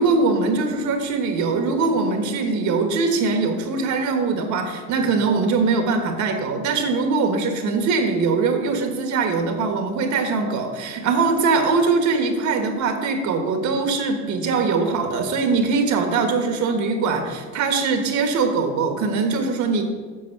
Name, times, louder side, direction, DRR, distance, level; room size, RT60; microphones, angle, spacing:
voice 1, 0.0-19.8, right 4 dB, 65° right, 5 dB, 1.6 m, -22 dB
8.5 x 5.7 x 5.9 m, 1.5 s
cardioid pair, 100°, 31 cm